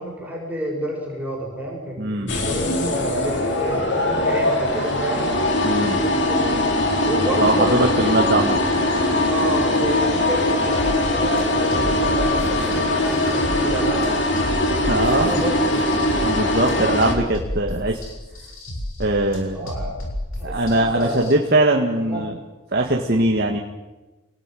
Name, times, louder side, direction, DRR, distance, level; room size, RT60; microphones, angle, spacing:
voice 1, 0.0-3.9 4.2-5.3 5.8-6.6 7.0-8.2 9.3-14.3 15.3-15.8 19.5-20.0 20.4-21.3 22.0-22.3, right 1 dB, 5° right, -3 dB, 6.9 m, -30 dB
voice 2, 2.0-2.3 5.6-6.0 7.4-8.6 14.7-15.5 16.2-18.0 19.0-19.7 20.4-22.4 22.7-23.6, right 2 dB, 45° right, 1 dB, 1.9 m, -21 dB
sound 1, 2.3-17.1, left 1 dB, 55° left, 3.6 m, -21 dB
sound 2, 10.7-21.3, left 1 dB, 80° left, 6.9 m, -32 dB
27.5 x 19.5 x 9.3 m, 1.1 s
head